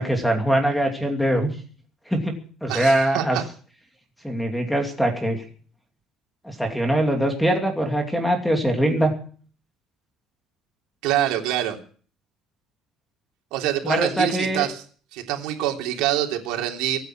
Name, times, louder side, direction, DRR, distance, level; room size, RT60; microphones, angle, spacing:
voice 1, 0.0-1.6 2.1-3.4 4.2-5.4 6.4-9.1 13.8-14.7, right 1 dB, ahead, 4 dB, 2.6 m, -22 dB
voice 2, 2.7-3.4 11.0-11.8 13.5-14.8 15.1-17.0, right 12 dB, 85° right, 2 dB, 3.4 m, -25 dB
24.0 x 9.3 x 6.1 m, 0.44 s
cardioid pair, 175°, 0 cm